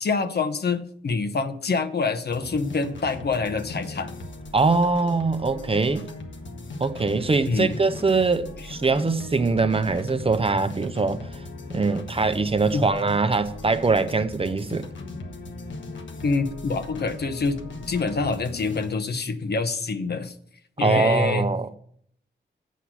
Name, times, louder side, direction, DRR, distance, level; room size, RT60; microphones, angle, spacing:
voice 1, 0.0-4.1 7.5-7.7 12.7-12.9 16.2-17.6 17.9-20.3 20.8-21.5, left 4 dB, 60° left, 1.0 m, -26 dB
sound 1, 2.3-18.9, left 2 dB, 85° left, 1.2 m, -38 dB
voice 2, 4.5-6.1 6.8-11.2 11.7-14.9 20.8-21.7, right 3 dB, 30° right, 0.6 m, -22 dB
8.2 x 5.8 x 6.2 m
wide cardioid pair, 80°, 19 cm